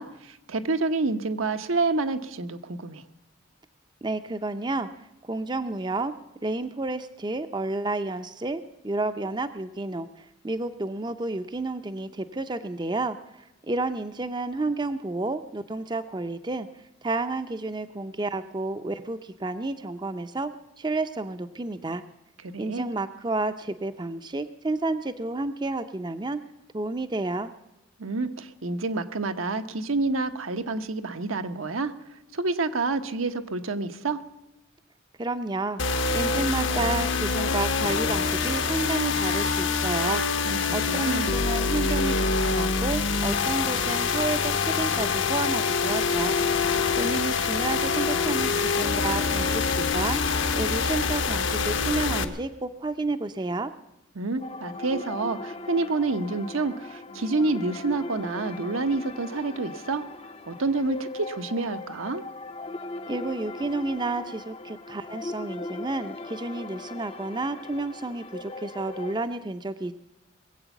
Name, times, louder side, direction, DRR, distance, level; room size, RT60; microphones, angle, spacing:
voice 1, 0.0-3.0 22.4-22.9 28.0-31.9 32.3-34.2 40.5-41.3 54.1-60.0 60.5-62.2, right 3 dB, 85° right, 8 dB, 0.9 m, -28 dB
voice 2, 4.0-4.9 5.2-6.1 6.4-16.7 17.0-22.0 22.6-26.4 26.7-27.5 35.2-35.8 36.1-40.2 40.7-46.4 46.9-50.2 50.5-53.7 63.1-69.9, right 2 dB, 20° right, 10 dB, 0.5 m, -30 dB
sound 1, 35.8-52.2, left 4 dB, 65° left, 1.0 m, -25 dB
sound 2, 54.4-69.1, left 2 dB, 30° left, 0.5 m, -39 dB
21.0 x 8.0 x 7.0 m, 0.94 s
head